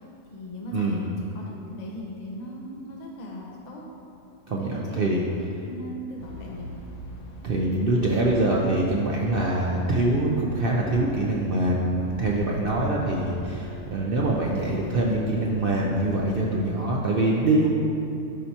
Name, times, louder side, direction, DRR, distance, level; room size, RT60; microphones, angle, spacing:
voice 1, 0.3-4.0 4.6-5.2 5.7-6.7 12.8-13.1, equal, 40° left, -2 dB, 0.6 m, -38 dB
voice 2, 4.5-5.2 7.4-17.7, right 2 dB, 60° right, -3 dB, 0.5 m, -24 dB
sound 1, 6.2-16.5, equal, 70° left, 1.2 m, -42 dB
11.5 x 4.5 x 2.8 m, 2.7 s
omnidirectional pair, 1.6 m